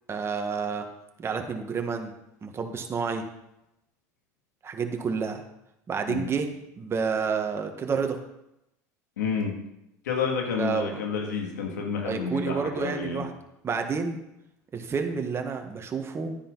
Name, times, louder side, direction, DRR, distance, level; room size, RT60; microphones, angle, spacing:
voice 1, 0.1-0.8 1.2-2.1 2.4-3.2 4.6-5.4 5.9-6.5 6.8-8.2 10.6-11.0 12.0-13.3 13.6-14.2 14.7-16.4, right 5 dB, 30° right, 4 dB, 1.7 m, -29 dB
voice 2, 9.2-9.6 10.0-13.2, left 5 dB, 90° left, 1 dB, 2.6 m, -29 dB
10.5 x 10.0 x 4.1 m, 0.85 s
hypercardioid pair, 90°, 9 cm